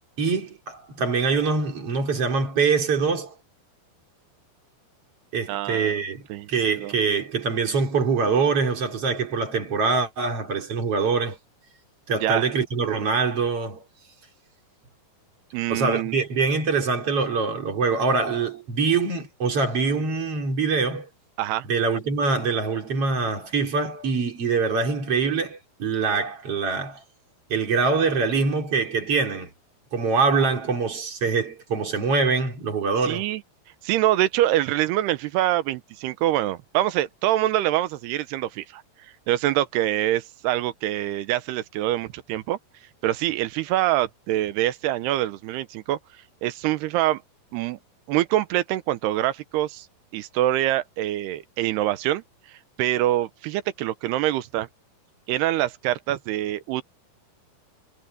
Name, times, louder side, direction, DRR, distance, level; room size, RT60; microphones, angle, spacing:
voice 1, 0.2-3.3 5.3-6.2 6.5-11.4 12.1-13.8 15.7-21.1 21.6-27.0 27.5-29.5 29.9-33.3, right 4 dB, 35° right, 4.2 m, -24 dB
voice 2, 5.5-5.9 6.3-6.9 12.2-12.4 15.5-16.2 21.4-21.7 33.0-33.4 33.8-38.8 39.3-42.6 43.0-46.0 46.4-47.2 47.5-47.8 48.1-49.9 50.1-54.7 55.3-56.8, right 14 dB, 80° right, 2.9 m, -25 dB
omnidirectional pair, 4.8 m